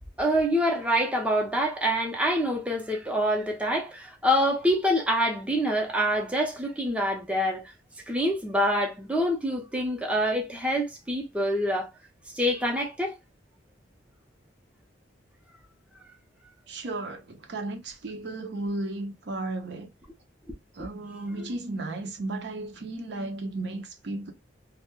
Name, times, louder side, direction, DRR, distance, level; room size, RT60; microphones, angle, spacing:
voice 1, 0.2-7.6 8.1-11.9 12.3-13.2 21.4-21.5, equal, 5° right, 0.5 m, -26 dB
voice 2, 16.7-19.9 20.7-24.3, right 2 dB, 60° right, 0.5 m, -34 dB
2.2 x 2.0 x 2.9 m
head